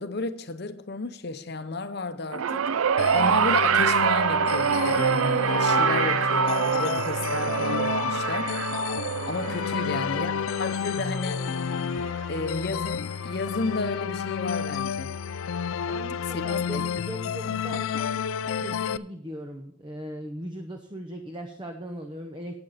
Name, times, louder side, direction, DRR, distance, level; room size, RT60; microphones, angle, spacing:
voice 1, 0.0-2.7 3.1-8.5 9.3-10.3 10.6-11.5 12.3-15.2 16.3-16.8, left 3 dB, 50° left, 0.8 m, -32 dB
sound 1, 2.3-12.8 13.8-13.9, right 7 dB, 85° right, 0.4 m, -25 dB
sound 2, 3.0-19.0, left 7 dB, 80° left, 0.4 m, -30 dB
voice 2, 9.7-10.5 15.8-18.2 18.6-22.6, equal, 20° right, 0.8 m, -39 dB
11.5 x 9.0 x 4.1 m
head